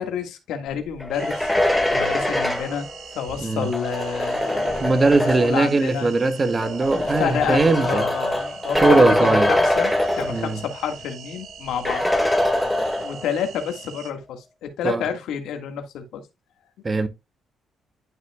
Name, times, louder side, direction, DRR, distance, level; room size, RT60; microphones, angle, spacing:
voice 1, 0.0-1.5 1.9-2.9 3.1-6.1 6.9-12.1 13.0-16.2, left 7 dB, 85° left, 1.7 m, -29 dB
sound 1, 1.0-5.7 6.6-10.8 11.1-11.2 11.8-13.4, left 1 dB, 5° left, 1.7 m, -23 dB
sound 2, 1.1-14.1, right 8 dB, 70° right, 1.4 m, -43 dB
voice 2, 4.8-8.1 8.7-9.5 10.3-10.6 14.8-15.1 16.8-17.1, right 3 dB, 30° right, 1.1 m, -20 dB
11.5 x 5.6 x 2.3 m
cardioid pair, 90°, 0 cm